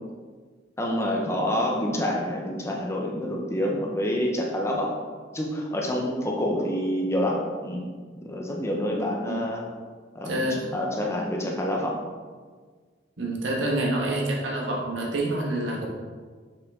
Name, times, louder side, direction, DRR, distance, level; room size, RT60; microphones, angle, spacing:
voice 1, 0.8-5.0 5.3-7.9 8.2-9.7 10.1-12.1, left 1 dB, 15° left, -1 dB, 0.8 m, -27 dB
voice 2, 10.2-10.7 13.2-15.9, right 1 dB, 80° right, -2 dB, 1.4 m, -27 dB
6.8 x 5.0 x 3.6 m, 1.6 s
head